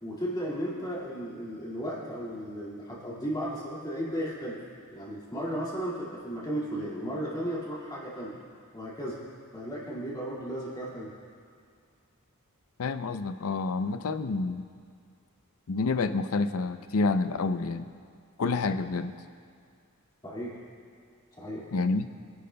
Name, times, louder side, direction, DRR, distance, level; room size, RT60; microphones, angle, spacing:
voice 1, 0.0-4.6 4.9-8.4 8.7-9.2 9.5-11.1 20.2-20.6 21.4-21.7, equal, 20° left, -7 dB, 2.1 m, -35 dB
voice 2, 12.8-14.7 15.7-17.9 18.4-19.1 21.7-22.1, left 3 dB, 65° left, 10 dB, 0.5 m, -28 dB
23.5 x 11.0 x 2.2 m, 2.1 s
head